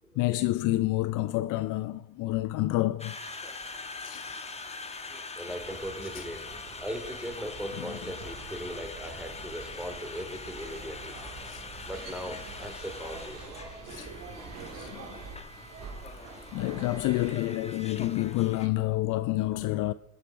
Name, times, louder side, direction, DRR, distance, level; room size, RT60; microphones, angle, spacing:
voice 1, 0.2-3.1 4.0-4.3 6.1-6.3 7.8-8.0 11.4-11.6 13.8-14.3 14.7-15.1 16.5-19.9, left 17 dB, 45° left, 0.6 m, -29 dB
Conversation, 3.0-18.7, left 3 dB, 15° left, 1.7 m, -43 dB
voice 2, 5.3-6.4 6.8-11.2 11.8-13.6, equal, ahead, 3.7 m, -38 dB
sound 1, 5.5-17.3, right 4 dB, 50° right, 4.1 m, -45 dB
21.5 x 8.0 x 5.3 m
hypercardioid pair, 90°, 43 cm